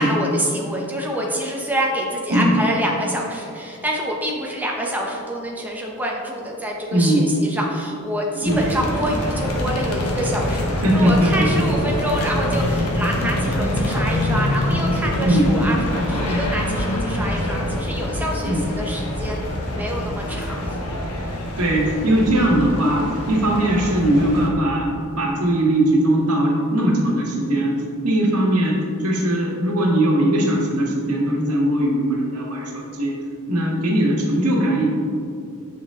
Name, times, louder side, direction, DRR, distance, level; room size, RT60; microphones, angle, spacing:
voice 1, 0.0-19.4 19.7-20.8, equal, 10° right, -2 dB, 0.8 m, -26 dB
voice 2, 6.9-7.3 8.4-8.6 10.8-11.7 15.2-15.5 18.4-18.6 21.6-27.7 28.0-33.1 33.5-34.9, right 1 dB, 90° right, -1 dB, 1.5 m, -20 dB
sound 1, 8.4-24.5, left 1 dB, 80° left, 1.2 m, -25 dB
8.0 x 6.1 x 3.7 m, 2.5 s
head